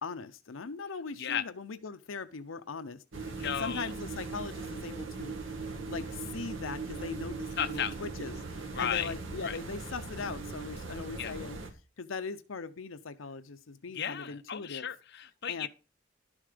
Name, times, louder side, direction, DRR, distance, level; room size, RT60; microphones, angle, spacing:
voice 1, 0.0-5.6 5.9-11.6 12.0-14.9 15.5-15.7, left 4 dB, 85° left, 0.7 m, -40 dB
sound 1, 3.1-11.7, right 4 dB, 75° right, 2.0 m, -39 dB
voice 2, 3.3-3.9 7.6-7.9 8.7-9.1 9.4-9.6 11.2-11.3 13.9-15.7, left 8 dB, 60° left, 0.9 m, -34 dB
12.0 x 7.2 x 5.1 m
head